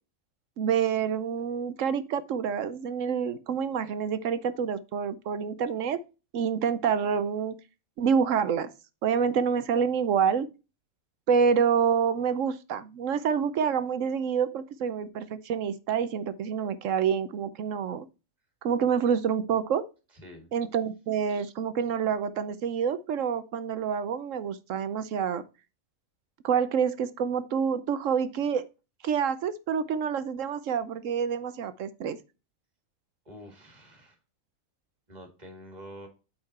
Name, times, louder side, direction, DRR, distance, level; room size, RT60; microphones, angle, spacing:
voice 1, 0.6-6.0 6.3-7.5 8.0-8.7 9.0-10.5 11.3-18.1 18.6-19.9 20.5-25.4 26.4-28.6 29.0-32.2, right 7 dB, 65° right, 1.0 m, -27 dB
voice 2, 20.1-20.5 33.3-34.2 35.1-36.1, equal, 30° right, 2.2 m, -47 dB
8.6 x 4.5 x 4.2 m
omnidirectional pair, 1.5 m